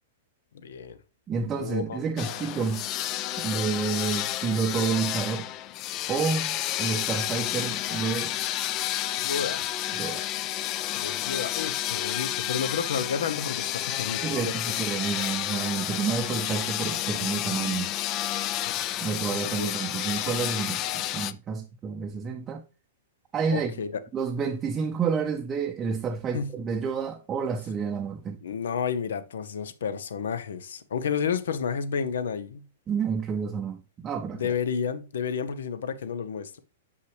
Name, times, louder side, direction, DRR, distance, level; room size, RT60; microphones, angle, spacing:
voice 1, 0.6-1.0 1.5-2.4 9.2-9.7 11.0-14.8 18.7-18.8 19.3-19.7 23.5-23.9 26.3-26.5 28.4-32.7 34.3-36.6, left 6 dB, 80° left, 0.7 m, -31 dB
voice 2, 1.3-2.8 3.4-5.5 6.1-8.3 9.9-10.3 14.2-17.9 19.0-22.6 23.3-23.7 24.1-28.4 32.9-34.5, right 6 dB, 20° right, 0.6 m, -29 dB
sound 1, 2.2-21.3, left 13 dB, 35° left, 0.4 m, -30 dB
6.5 x 5.6 x 3.3 m
hypercardioid pair, 130°, 0 cm